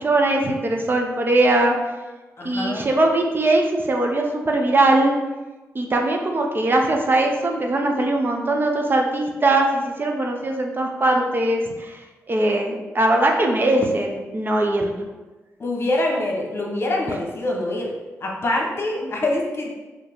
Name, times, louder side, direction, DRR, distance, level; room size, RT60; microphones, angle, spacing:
voice 1, 0.0-1.7 2.4-5.2 5.7-12.0 12.3-14.9 19.0-19.4, right 2 dB, 40° right, 2 dB, 0.7 m, -20 dB
voice 2, 2.4-2.8 15.6-17.9 18.2-19.7, left 1 dB, 45° left, -1 dB, 1.0 m, -25 dB
4.9 x 3.0 x 3.6 m, 1.2 s
cardioid pair, 65°, 6 cm